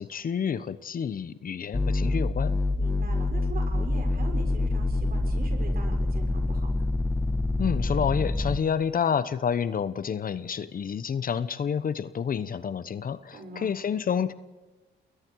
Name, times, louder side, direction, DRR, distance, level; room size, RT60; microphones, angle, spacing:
voice 1, 0.0-2.6 7.6-14.3, left 7 dB, 45° left, 14 dB, 1.0 m, -29 dB
sound 1, 1.7-8.6, left 2 dB, 15° left, 1.2 m, -26 dB
voice 2, 2.8-6.8 13.3-13.7, right 3 dB, 50° right, 3 dB, 6.1 m, -41 dB
29.0 x 21.0 x 4.8 m, 1.2 s
cardioid pair, 90°, 20 cm